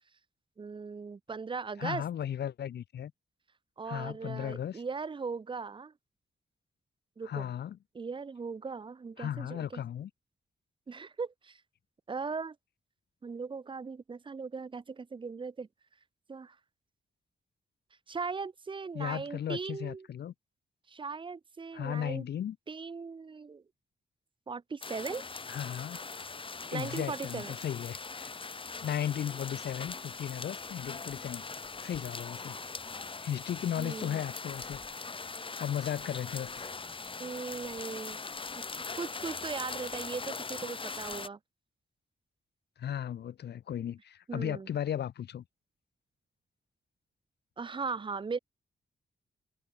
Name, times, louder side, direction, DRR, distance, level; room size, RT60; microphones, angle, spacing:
voice 1, 0.6-2.0 3.8-5.9 7.2-7.5 7.9-9.8 10.9-11.6 12.1-12.6 13.2-15.7 16.3-16.6 18.1-20.1 20.9-22.2 22.7-23.6 24.5-25.2 26.7-27.6 33.8-34.2 37.2-38.2 38.6-38.7 39.0-41.4 44.3-44.7 47.6-48.4, right 5 dB, 30° right, 0.8 m, -38 dB
voice 2, 1.8-3.1 3.9-4.8 7.2-7.8 9.2-10.1 18.9-20.3 21.7-22.6 25.5-26.0 26.7-28.3 28.8-31.4 31.8-32.6 33.2-34.8 35.6-36.7 42.8-45.4, left 10 dB, 75° left, 0.9 m, -36 dB
sound 1, 24.8-41.3, left 4 dB, 30° left, 3.0 m, -41 dB
open air
wide cardioid pair, 140°, 17 cm